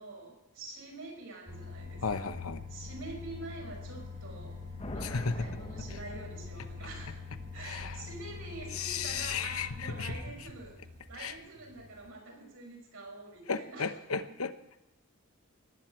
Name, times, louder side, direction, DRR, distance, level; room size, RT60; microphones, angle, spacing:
voice 1, 0.0-2.3 2.7-4.7 4.9-7.2 7.5-13.9 14.3-14.4, right 2 dB, 70° right, 0 dB, 6.0 m, -46 dB
sound 1, 1.5-12.1, left 4 dB, 40° right, 3.3 m, -44 dB
voice 2, 2.0-2.6 5.0-5.5 7.6-8.1 8.7-10.2 11.2-11.3 13.5-14.5, left 5 dB, 80° left, 10 dB, 1.0 m, -34 dB
sound 2, 4.8-6.9, left 1 dB, 30° left, 1.1 m, -44 dB
18.5 x 7.8 x 8.9 m, 0.93 s
head